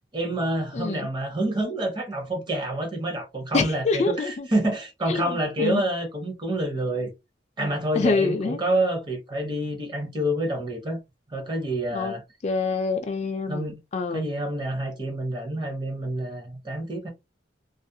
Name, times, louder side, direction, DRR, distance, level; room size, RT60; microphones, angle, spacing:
voice 1, 0.1-7.1 7.6-11.0 11.3-12.2 13.5-13.8 14.1-17.1, right 1 dB, 25° right, 0.7 m, -28 dB
voice 2, 3.5-4.5 5.1-5.8 8.0-8.6 11.9-12.1 12.4-14.2, left 4 dB, 40° left, 0.3 m, -26 dB
2.4 x 2.0 x 2.6 m
head